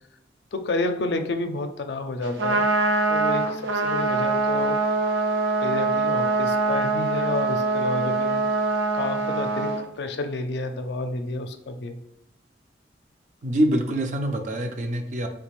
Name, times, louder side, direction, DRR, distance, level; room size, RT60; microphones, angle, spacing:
voice 1, 0.5-2.6 3.1-4.8 5.6-8.4 8.9-9.7 10.0-12.0, left 2 dB, 70° left, 7 dB, 0.4 m, -30 dB
Trumpet, 2.2-9.8, right 3 dB, 80° right, 0.6 m, -23 dB
voice 2, 13.4-15.3, right 1 dB, 40° right, 5 dB, 0.4 m, -25 dB
3.2 x 2.4 x 3.3 m, 0.83 s
head